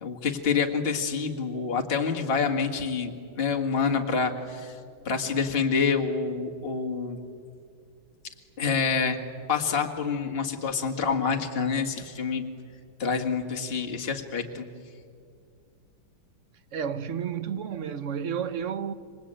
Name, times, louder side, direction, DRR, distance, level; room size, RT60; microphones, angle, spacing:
voice 1, 0.0-4.8 5.1-7.2 8.6-9.2 9.5-12.5 13.0-14.7, left 5 dB, 30° left, 1.9 m, -27 dB
voice 2, 16.7-18.9, right 7 dB, 55° right, 0.9 m, -31 dB
27.0 x 24.5 x 8.9 m
omnidirectional pair, 2.3 m